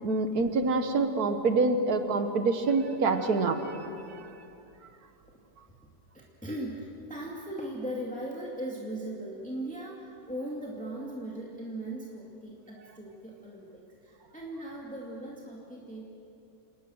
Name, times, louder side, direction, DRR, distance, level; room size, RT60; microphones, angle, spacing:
voice 1, 0.0-4.3, right 3 dB, 85° right, 8 dB, 1.9 m, -26 dB
voice 2, 5.8-16.0, right 1 dB, 5° left, -3 dB, 2.3 m, -39 dB
28.0 x 19.0 x 6.4 m, 2.7 s
omnidirectional pair, 1.6 m